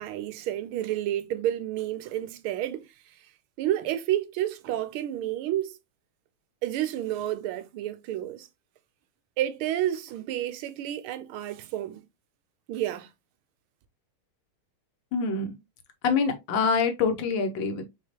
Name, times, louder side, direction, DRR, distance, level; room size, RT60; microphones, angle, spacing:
voice 1, 0.0-2.9 3.6-5.8 6.6-8.5 9.4-12.0 12.7-13.1, right 12 dB, 80° right, 1.4 m, -30 dB
voice 2, 15.1-15.6 16.0-17.9, left 5 dB, 65° left, 1.5 m, -25 dB
6.0 x 3.0 x 2.8 m
omnidirectional pair, 2.4 m